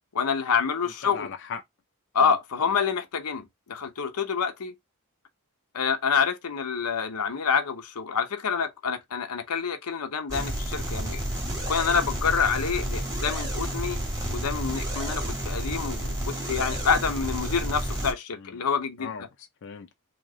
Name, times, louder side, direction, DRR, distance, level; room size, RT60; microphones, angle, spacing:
voice 1, 0.1-1.3 2.1-4.7 5.7-11.2 11.7-14.0 14.3-19.1, left 6 dB, 90° left, 0.7 m, -27 dB
voice 2, 0.8-1.6 2.2-2.7 18.3-18.7 19.0-19.9, left 6 dB, 55° left, 0.5 m, -40 dB
sound 1, 10.3-18.1, right 1 dB, 15° right, 1.4 m, -31 dB
3.1 x 2.8 x 3.5 m
head